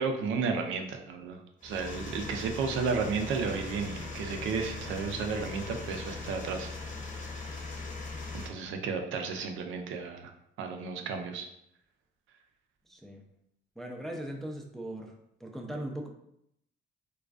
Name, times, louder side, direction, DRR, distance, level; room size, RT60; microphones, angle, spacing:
voice 1, 0.0-6.9 7.3-7.4 8.3-10.3 10.6-11.5, right 5 dB, 80° right, 4 dB, 0.4 m, -33 dB
sound 1, 1.6-8.5, left 3 dB, 40° left, 0.6 m, -40 dB
voice 2, 12.9-13.3 13.8-16.1, right 1 dB, ahead, 0 dB, 0.3 m, -39 dB
2.4 x 2.3 x 2.3 m, 0.76 s
cardioid pair, 90°, 20 cm